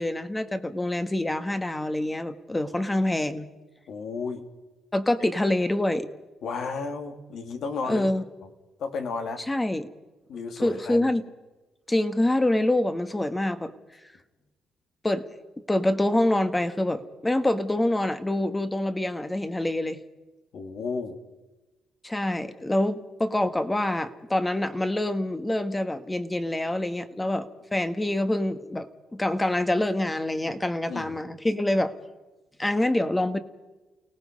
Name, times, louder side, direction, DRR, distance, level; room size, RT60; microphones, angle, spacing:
voice 1, 0.0-3.5 4.9-6.1 7.8-8.2 9.5-9.9 10.6-11.2 11.9-13.7 15.0-15.3 15.7-20.0 22.0-28.9 29.1-31.9 32.6-33.4, left 1 dB, 15° left, 9 dB, 1.6 m, -26 dB
voice 2, 3.9-4.5 6.4-8.1 8.8-9.4 10.3-11.1 20.5-21.2 30.9-31.2, left 4 dB, 70° left, 5 dB, 2.7 m, -33 dB
29.5 x 18.0 x 5.4 m, 1.1 s
cardioid pair, 90°, 0 cm